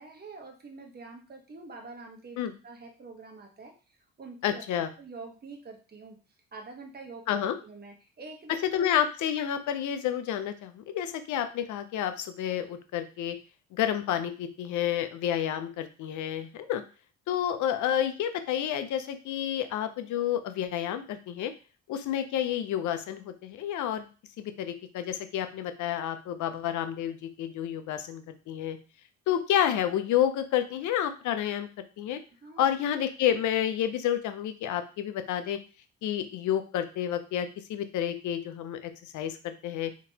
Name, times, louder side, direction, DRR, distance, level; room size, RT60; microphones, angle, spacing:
voice 1, 0.0-6.2 6.5-8.8 32.4-32.7, right 3 dB, 30° right, 2 dB, 1.1 m, -46 dB
voice 2, 4.4-4.9 7.3-7.5 8.7-13.4 13.7-16.8 17.3-21.5 21.9-24.0 24.4-28.8 29.3-31.7 32.0-32.2 32.6-35.6 36.0-39.9, left 10 dB, 75° left, 9 dB, 0.5 m, -30 dB
3.6 x 2.9 x 2.8 m, 0.34 s
cardioid pair, 90°, 30 cm